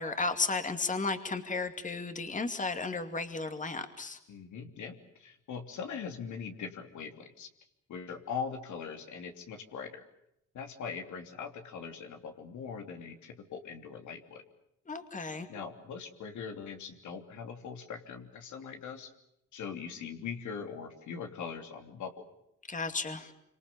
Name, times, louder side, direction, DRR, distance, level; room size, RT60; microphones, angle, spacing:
voice 1, 0.0-4.2 14.9-15.5 22.7-23.3, left 3 dB, 25° left, 7 dB, 2.5 m, -34 dB
voice 2, 4.3-7.5 7.9-10.0 10.5-14.4 15.5-19.1 19.5-22.2, left 6 dB, 75° left, 5 dB, 3.2 m, -41 dB
26.5 x 26.0 x 7.0 m, 0.78 s
cardioid pair, 90°, 30 cm